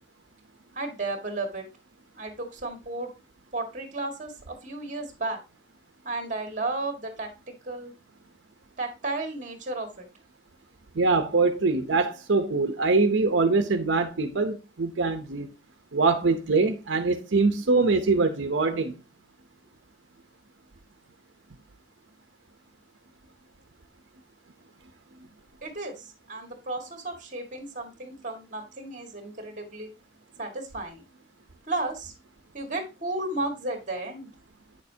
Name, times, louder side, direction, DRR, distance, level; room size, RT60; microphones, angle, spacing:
voice 1, 0.7-1.6 2.2-3.1 3.5-5.4 6.0-7.3 7.6-7.9 8.8-10.1 25.6-29.9 30.4-31.0 31.7-32.1 32.5-34.3, right 2 dB, 40° right, 1.8 m, -33 dB
voice 2, 10.9-15.5 15.9-18.9, right 3 dB, 75° right, 0.7 m, -23 dB
8.9 x 6.6 x 2.8 m
head